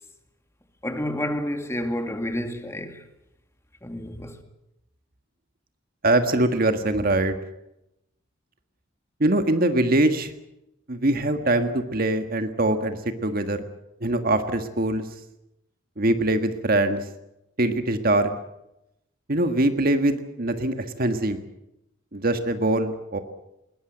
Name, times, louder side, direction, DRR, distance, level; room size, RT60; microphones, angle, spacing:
voice 1, 0.8-3.0 3.8-4.4, left 1 dB, 15° left, 2.2 m, -29 dB
voice 2, 6.0-7.4 9.2-10.3 10.9-13.6 14.0-15.1 16.0-17.0 17.6-18.3 19.3-21.4 22.1-23.2, right 1 dB, 50° right, 1.6 m, -23 dB
20.5 x 19.5 x 8.0 m
head